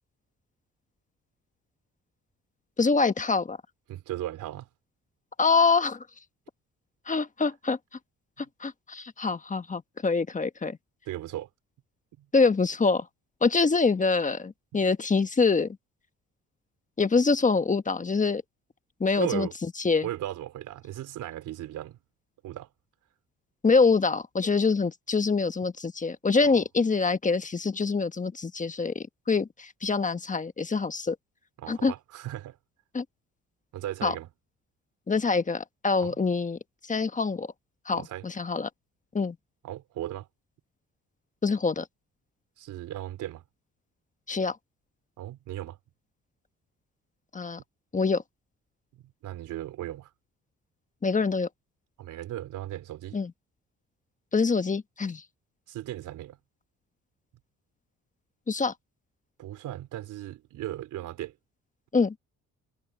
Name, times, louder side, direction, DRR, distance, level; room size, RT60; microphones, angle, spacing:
voice 1, 2.8-3.6 5.4-6.0 7.1-7.8 8.6-10.8 12.3-13.1 13.4-15.7 17.0-18.4 19.0-19.5 19.8-20.1 23.6-31.1 31.7-31.9 32.9-33.0 34.0-34.1 35.1-37.5 37.9-38.7 39.1-39.4 41.4-41.9 44.3-44.6 47.3-47.6 47.9-48.2 51.0-51.5 53.1-53.3 54.3-55.2 58.5-58.7 61.9-62.1, left 4 dB, 25° left, 1.3 m, -25 dB
voice 2, 3.9-4.7 11.1-11.5 12.2-12.3 14.7-14.8 19.2-19.5 20.0-22.0 22.4-22.7 26.4-26.6 31.6-32.6 33.7-34.3 36.0-36.2 37.9-38.3 39.6-40.3 42.6-43.4 45.2-45.8 49.2-50.1 52.0-53.2 55.7-56.4 59.4-61.3, right 13 dB, 85° right, 3.6 m, -36 dB
cardioid pair, 90°, 30 cm